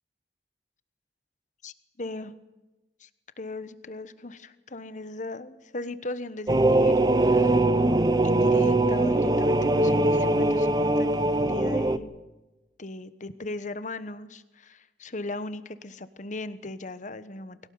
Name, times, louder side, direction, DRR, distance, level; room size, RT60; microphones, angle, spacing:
voice 1, 1.6-2.4 3.0-3.1 3.4-7.6 8.2-12.1 12.8-17.6, left 2 dB, 45° left, 13 dB, 1.2 m, -38 dB
sound 1, 6.5-12.0, right 2 dB, 25° right, 0.8 m, -22 dB
21.5 x 18.0 x 9.6 m, 1.1 s
head